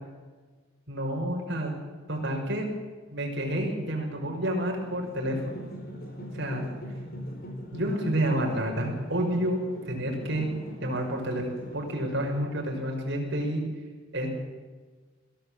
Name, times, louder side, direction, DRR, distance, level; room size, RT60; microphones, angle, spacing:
voice 1, 0.9-1.7 2.1-2.7 3.1-5.6 6.3-6.7 7.7-9.6 9.9-10.5 10.8-13.6 14.1-14.3, right 1 dB, 60° right, 1 dB, 5.8 m, -29 dB
sound 1, 4.8-12.4, equal, 50° left, 4.7 m, -41 dB
22.5 x 16.5 x 7.7 m, 1.4 s
head